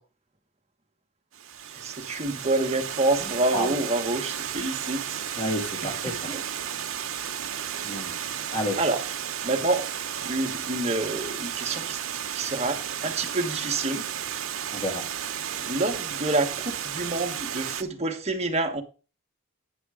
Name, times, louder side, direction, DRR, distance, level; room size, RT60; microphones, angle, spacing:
Water, 1.3-17.8, right 9 dB, 85° right, 0.8 m, -33 dB
voice 1, 1.7-5.2 5.8-6.4 8.1-9.1 9.4-9.9 10.2-12.0 12.3-14.0 15.6-18.8, right 2 dB, 30° right, 1.2 m, -28 dB
voice 2, 5.4-6.3 7.8-8.1 8.5-8.8 14.7-15.0, equal, 30° left, 2.7 m, -30 dB
9.3 x 5.9 x 4.9 m
head